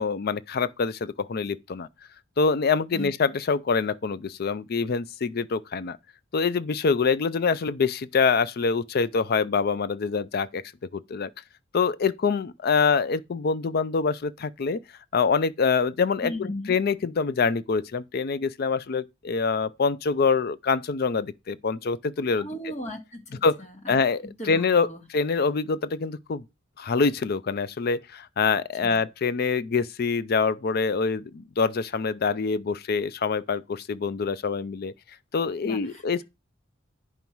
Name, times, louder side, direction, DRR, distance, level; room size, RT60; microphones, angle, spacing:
voice 1, 0.0-1.9 2.4-6.0 6.3-10.6 10.9-11.3 11.7-14.8 15.1-22.5 23.4-23.6 23.9-26.4 26.8-34.9 35.3-36.2, left 5 dB, 50° left, 0.4 m, -25 dB
voice 2, 16.2-16.7 22.4-23.4 23.9-24.0 24.4-25.0 28.8-29.0 35.6-36.2, left 1 dB, 35° left, 1.9 m, -36 dB
9.5 x 5.5 x 4.5 m
head